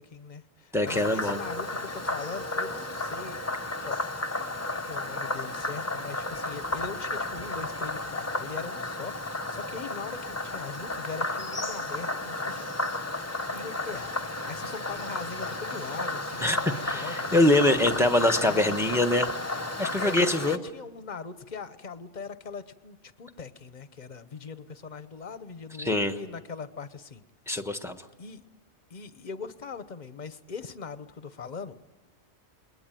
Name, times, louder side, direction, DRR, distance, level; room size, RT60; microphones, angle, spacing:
voice 1, 0.0-3.4 3.8-4.0 4.8-12.7 13.5-19.0 20.0-20.2 20.5-27.2 28.2-28.4 28.9-31.8, left 5 dB, 40° left, 12 dB, 1.1 m, -41 dB
voice 2, 0.7-1.4 16.4-16.6 16.8-19.3 19.8-20.6 25.8-26.1 27.5-28.0, left 1 dB, ahead, 8 dB, 1.1 m, -24 dB
Frog, 0.9-20.6, left 2 dB, 15° left, 0.8 m, -33 dB
28.5 x 21.5 x 9.2 m, 1.2 s
omnidirectional pair, 1.3 m